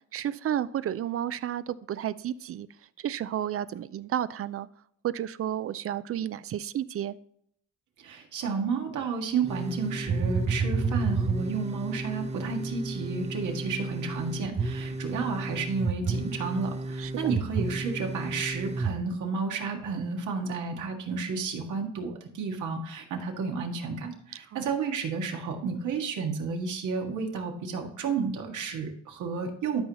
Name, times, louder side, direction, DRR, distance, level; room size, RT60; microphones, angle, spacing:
voice 1, 0.1-2.7 3.0-4.7 5.0-7.2 17.0-17.3 24.5-24.6, right 11 dB, 50° right, 16 dB, 0.5 m, -32 dB
voice 2, 8.0-29.8, right 5 dB, 80° right, 2 dB, 1.8 m, -31 dB
sound 1, 9.5-18.9, right 3 dB, 20° right, 0.8 m, -31 dB
12.5 x 5.5 x 3.0 m, 0.67 s
cardioid pair, 90°, 30 cm